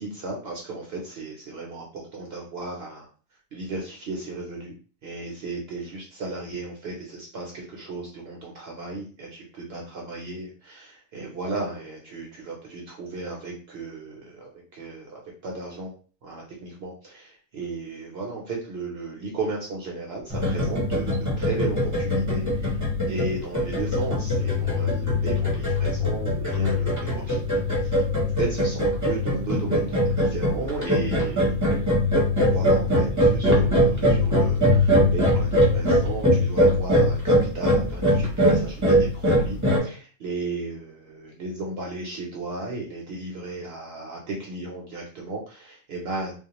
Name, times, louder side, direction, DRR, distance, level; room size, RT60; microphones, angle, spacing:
voice 1, 0.0-3.1 3.5-4.7 5.0-15.9 16.2-22.8 23.1-28.1 28.4-31.5 32.4-46.3, right 3 dB, 60° right, -1 dB, 0.7 m, -35 dB
sound 1, 20.3-39.8, left 1 dB, 20° right, 0.6 m, -22 dB
2.3 x 2.0 x 2.8 m, 0.39 s
omnidirectional pair, 1.4 m